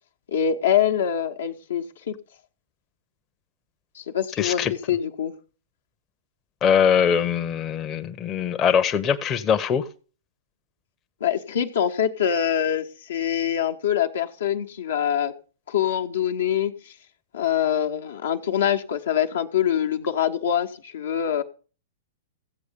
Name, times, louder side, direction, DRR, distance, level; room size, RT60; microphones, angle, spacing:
voice 1, 0.3-2.2 3.9-5.3 11.2-15.3 15.7-16.7 17.3-21.4, left 9 dB, 65° left, 1.2 m, -24 dB
voice 2, 4.4-4.7 6.6-9.8, left 7 dB, 25° left, 0.9 m, -22 dB
15.5 x 8.0 x 5.2 m
figure-of-eight pair, 110°, 0 cm